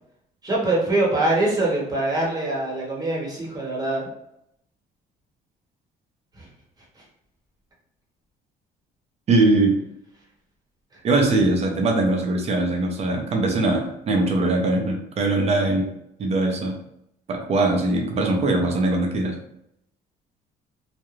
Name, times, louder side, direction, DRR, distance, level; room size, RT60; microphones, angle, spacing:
voice 1, 0.4-4.1, right 2 dB, 25° right, -4 dB, 1.1 m, -23 dB
voice 2, 9.3-9.7 11.0-15.8 16.2-16.7 17.3-19.3, right 2 dB, 40° right, 2 dB, 0.6 m, -21 dB
2.4 x 2.2 x 3.0 m, 0.77 s
cardioid pair, 110°, 17 cm